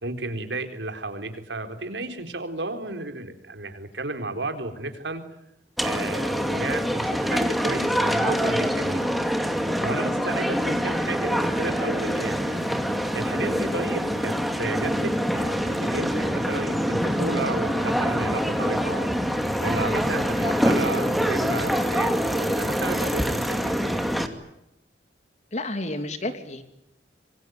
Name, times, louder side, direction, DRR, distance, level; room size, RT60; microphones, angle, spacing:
voice 1, 0.0-5.2 5.8-9.0 9.8-12.8 13.1-19.1 19.6-24.0, right 2 dB, 85° right, 7 dB, 4.0 m, -33 dB
sound 1, 5.8-24.3, equal, ahead, 2.4 m, -25 dB
voice 2, 25.5-26.6, left 2 dB, 40° left, 8 dB, 2.9 m, -30 dB
26.5 x 23.0 x 9.4 m, 0.82 s
head